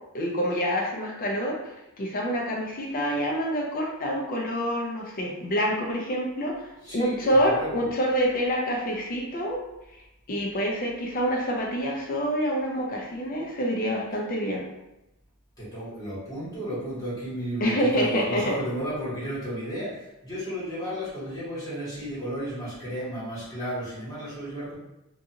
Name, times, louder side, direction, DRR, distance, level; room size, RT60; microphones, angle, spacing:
voice 1, 0.1-1.6 2.0-9.6 10.3-14.7 17.6-18.6, equal, 40° left, -1 dB, 0.5 m, -27 dB
voice 2, 6.8-7.9 15.6-24.8, equal, 15° left, -11 dB, 1.3 m, -33 dB
2.6 x 2.4 x 2.7 m, 0.91 s
head